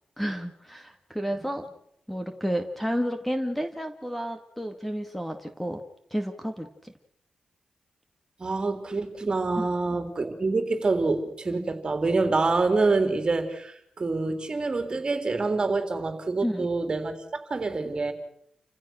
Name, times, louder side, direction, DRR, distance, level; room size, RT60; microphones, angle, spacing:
voice 1, 0.2-1.7 2.1-5.8 6.1-6.9 9.6-10.0 16.4-16.7, equal, 5° left, 7 dB, 2.1 m, -31 dB
voice 2, 8.4-18.1, right 3 dB, 40° right, 7 dB, 3.8 m, -26 dB
29.5 x 15.5 x 6.4 m, 0.74 s
cardioid pair, 70°, 2 cm